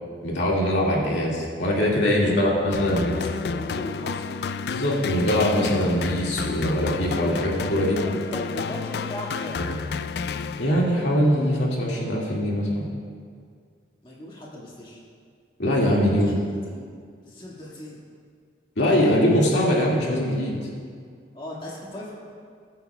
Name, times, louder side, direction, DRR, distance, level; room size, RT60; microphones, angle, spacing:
voice 1, 0.2-3.2 4.7-8.0 9.6-9.7 10.6-12.8 15.6-16.3 18.8-20.6, equal, 85° left, -4 dB, 2.2 m, -22 dB
voice 2, 2.1-2.6 2.9-4.5 8.0-9.7 14.0-15.0 16.1-16.9 17.2-18.0 21.3-22.1, left 1 dB, 30° left, -5 dB, 2.0 m, -37 dB
sound 1, 2.7-11.0, left 5 dB, 60° left, 0.3 m, -31 dB
20.5 x 9.2 x 2.4 m, 2.1 s
head